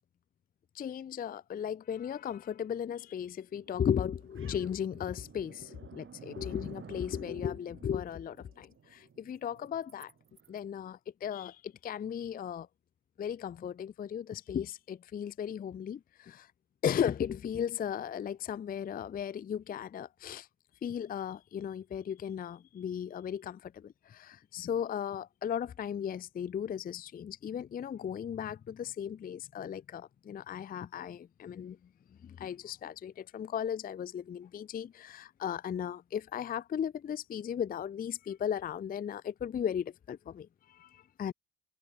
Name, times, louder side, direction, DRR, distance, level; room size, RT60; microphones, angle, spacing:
voice 1, 0.7-10.1 10.5-12.7 13.2-16.5 16.8-20.5 20.8-31.8 32.2-41.3, left 8 dB, 25° left, 0.5 m, -36 dB
sound 1, 3.5-10.6, right 7 dB, 35° right, 8.0 m, -53 dB
cardioid pair, 135°, 34 cm